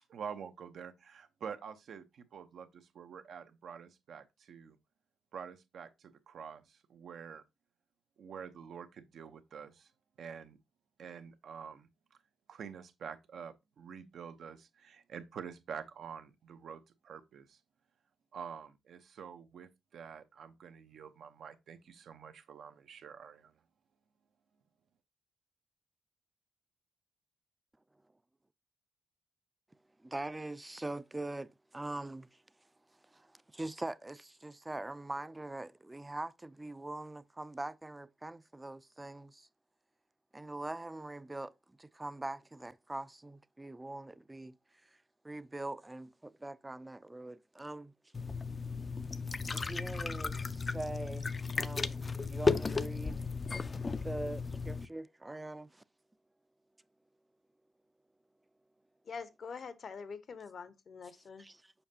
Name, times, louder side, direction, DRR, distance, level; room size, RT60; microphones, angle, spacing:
voice 1, 0.1-4.8 5.3-7.4 8.2-9.9 10.2-10.6 11.0-11.9 12.5-17.6 18.3-23.5, right 7 dB, 70° right, 0.8 m, -47 dB
voice 2, 30.0-32.4 33.1-39.5 40.3-41.5 41.8-44.6 45.2-47.9 49.5-53.2 54.0-55.8 61.4-61.7, right 2 dB, 20° right, 0.5 m, -43 dB
sound 1, 48.1-54.9, left 4 dB, 40° left, 0.5 m, -35 dB
voice 3, 59.1-61.4, left 5 dB, 60° left, 0.8 m, -45 dB
7.0 x 5.2 x 2.8 m
supercardioid pair, 55°, 0 cm